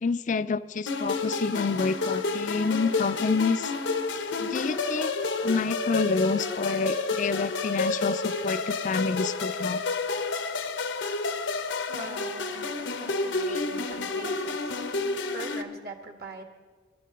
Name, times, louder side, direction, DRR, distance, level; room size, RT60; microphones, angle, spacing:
voice 1, 0.0-3.7 4.4-9.8 13.5-13.6, left 4 dB, 45° left, 15 dB, 0.4 m, -28 dB
sound 1, 0.9-15.6, left 3 dB, 85° left, 1.0 m, -30 dB
voice 2, 11.9-14.7 15.3-16.4, right 2 dB, 55° right, 5 dB, 1.5 m, -42 dB
25.5 x 12.5 x 3.8 m, 1.5 s
head